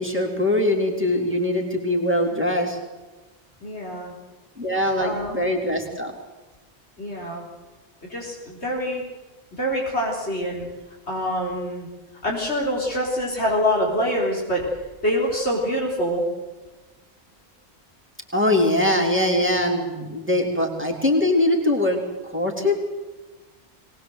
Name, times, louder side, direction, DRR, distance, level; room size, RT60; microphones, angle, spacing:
voice 1, 0.0-2.8 4.6-6.1 18.3-22.8, left 1 dB, 10° right, 0 dB, 3.3 m, -22 dB
voice 2, 3.6-4.1 5.0-5.5 5.8-6.0 7.0-7.4 8.1-9.0 9.6-10.7 11.1-11.9 12.2-14.7 15.0-16.3, equal, 75° left, -3 dB, 4.3 m, -25 dB
23.0 x 19.5 x 8.0 m, 1.2 s
omnidirectional pair, 1.1 m